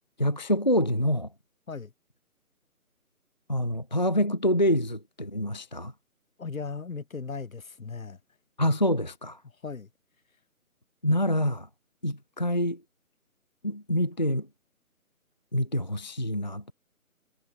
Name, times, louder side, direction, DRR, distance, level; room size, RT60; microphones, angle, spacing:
voice 1, 0.2-1.3 3.5-5.9 8.6-9.4 11.0-11.7 12.0-12.8 13.6-14.5 15.5-16.7, equal, 30° left, 0.5 m, -26 dB
voice 2, 6.4-8.2 9.4-9.9, left 5 dB, 65° left, 1.7 m, -37 dB
figure-of-eight pair, 155°, 44 cm